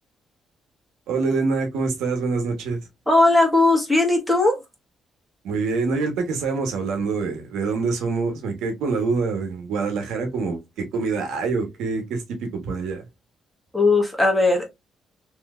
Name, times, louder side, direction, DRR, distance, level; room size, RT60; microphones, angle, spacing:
voice 1, 1.1-2.8 5.4-13.0, right 4 dB, 85° right, 1.0 m, -25 dB
voice 2, 3.1-4.6 13.7-14.7, left 2 dB, ahead, 1.3 m, -18 dB
3.2 x 2.8 x 2.3 m
cardioid pair, 90°, 0 cm